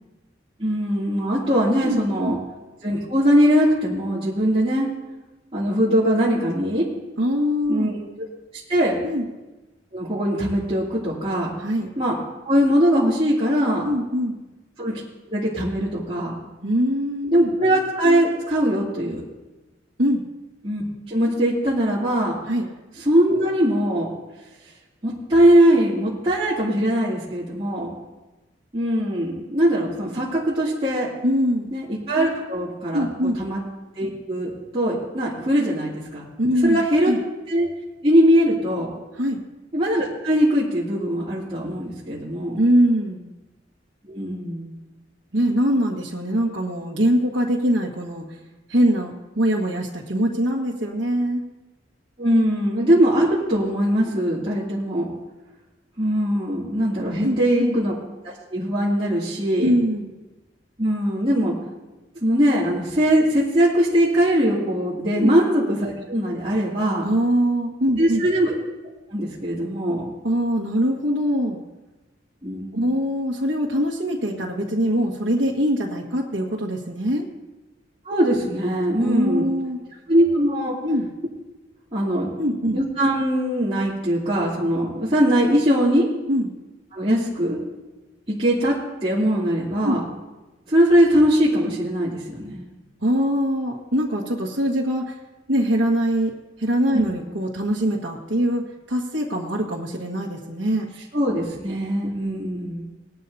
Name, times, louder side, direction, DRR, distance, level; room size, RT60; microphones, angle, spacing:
voice 1, 0.6-2.4 2.8-4.9 5.5-6.8 7.7-8.0 8.7-9.0 9.9-11.5 12.0-12.2 12.4-13.9 14.8-15.0 15.3-16.3 17.3-19.2 20.6-22.4 23.0-24.1 25.0-27.9 28.7-31.1 31.7-33.1 33.4-33.6 34.0-36.2 36.6-37.1 37.5-37.7 38.0-38.9 39.7-42.6 44.1-44.8 52.2-55.1 56.0-57.9 58.5-59.7 60.8-61.5 62.2-67.1 68.0-68.5 69.1-70.1 72.4-72.9 78.0-79.5 80.1-80.8 81.9-82.3 82.7-86.1 86.9-87.6 88.3-88.7 89.0-90.0 90.7-92.7 101.1-102.8, equal, 30° right, -9 dB, 2.9 m, -21 dB
voice 2, 1.8-2.4 7.2-7.9 9.0-9.3 11.6-11.9 13.8-14.4 16.6-17.5 20.0-20.2 22.5-22.6 31.2-31.7 32.9-33.4 36.4-37.2 39.1-39.4 42.6-43.3 45.3-48.2 48.7-51.4 57.2-57.7 59.6-60.1 65.1-65.3 67.0-68.2 70.2-71.6 72.7-77.3 79.0-79.8 80.8-81.1 82.4-82.8 86.3-86.5 89.8-90.0 93.0-95.1 95.5-96.3 96.6-100.9, equal, 80° right, -4 dB, 1.7 m, -23 dB
20.0 x 12.5 x 2.8 m, 1.1 s
head